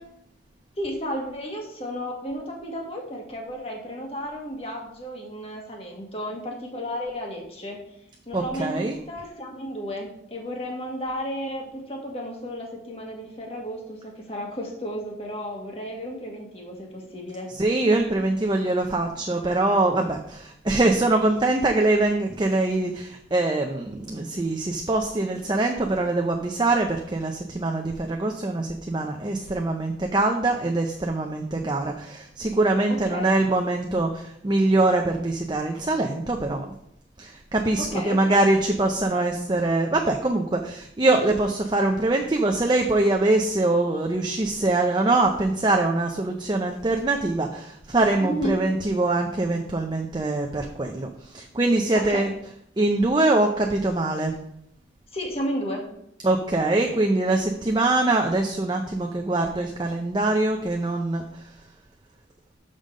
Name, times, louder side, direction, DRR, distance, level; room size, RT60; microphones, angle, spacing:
voice 1, 0.8-7.8 8.3-17.5 32.9-33.3 37.8-38.4 48.2-48.6 51.9-52.3 55.1-55.9, equal, 35° left, 0 dB, 1.5 m, -33 dB
voice 2, 8.3-9.0 17.6-36.7 37.2-52.3 52.8-54.3 56.2-61.4, right 2 dB, 25° right, 3 dB, 0.5 m, -23 dB
5.6 x 5.1 x 6.3 m, 0.74 s
head